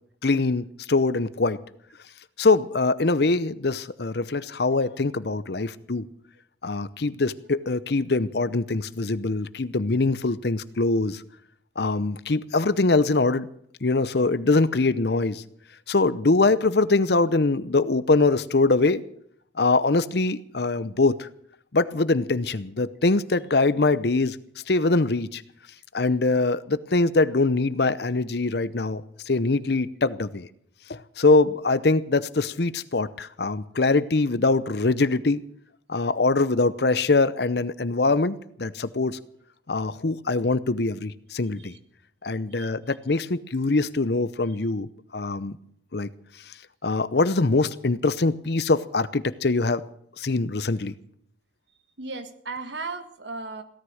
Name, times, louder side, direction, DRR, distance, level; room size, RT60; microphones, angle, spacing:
voice 1, 0.2-1.6 2.4-6.1 6.6-11.2 11.8-13.5 13.8-15.4 15.9-19.0 19.6-21.3 21.7-24.4 24.7-25.4 25.9-30.5 30.9-35.4 35.9-39.2 39.7-41.7 42.2-45.6 45.9-46.1 46.8-49.8 50.2-50.9, left 3 dB, 60° left, 16 dB, 0.8 m, -23 dB
voice 2, 42.5-43.0 52.0-53.6, right 3 dB, 70° right, 8 dB, 1.7 m, -36 dB
17.0 x 13.0 x 6.4 m, 0.66 s
head